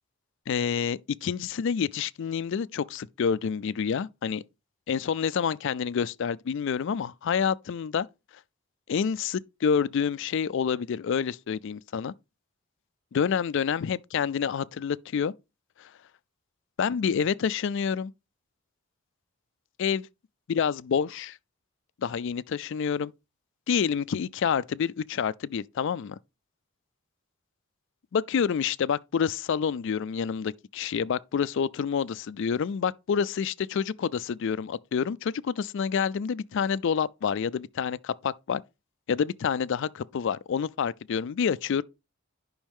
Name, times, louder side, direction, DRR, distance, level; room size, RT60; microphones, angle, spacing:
voice 1, 0.5-4.4 4.9-8.1 8.9-12.1 13.1-15.3 15.8-15.9 16.8-18.1 19.8-20.1 20.5-21.4 22.0-23.1 23.7-26.2 28.1-38.6 39.1-41.8, left 7 dB, 60° left, 0.3 m, -28 dB
10.5 x 5.4 x 3.5 m
head